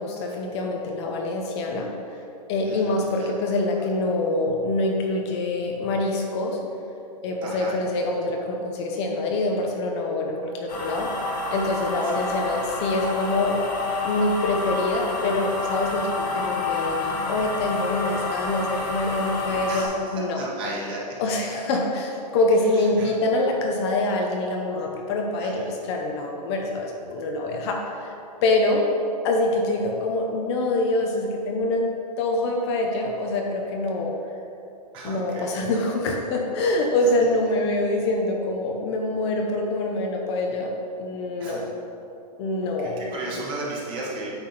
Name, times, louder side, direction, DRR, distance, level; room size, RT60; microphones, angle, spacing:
voice 1, 0.0-1.9 2.5-6.6 7.2-11.1 11.5-13.6 14.0-20.4 21.2-28.1 28.4-28.9 29.2-34.1 35.0-40.7 41.0-41.6 42.4-43.0 43.3-43.4, left 2 dB, 40° left, 1 dB, 0.9 m, -25 dB
voice 2, 2.6-3.3 7.4-7.7 12.0-12.3 19.7-21.0 22.7-23.1 25.4-25.7 34.9-35.6 37.0-37.1 41.4-41.6 42.8-44.3, right 2 dB, 25° right, -5 dB, 1.7 m, -35 dB
sound 1, 10.7-19.9, left 3 dB, 80° left, 1.8 m, -29 dB
8.9 x 3.5 x 5.8 m, 2.7 s
hypercardioid pair, 150°, 21 cm